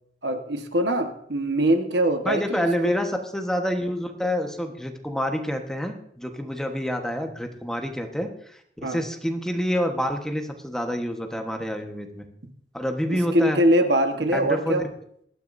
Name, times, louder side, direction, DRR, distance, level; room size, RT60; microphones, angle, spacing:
voice 1, 0.2-2.7 8.8-9.0 13.1-14.8, right 1 dB, 70° right, 6 dB, 1.4 m, -23 dB
voice 2, 2.2-12.3 12.7-13.6 14.3-14.8, equal, 5° left, 4 dB, 1.3 m, -27 dB
19.5 x 13.0 x 2.7 m, 0.66 s
head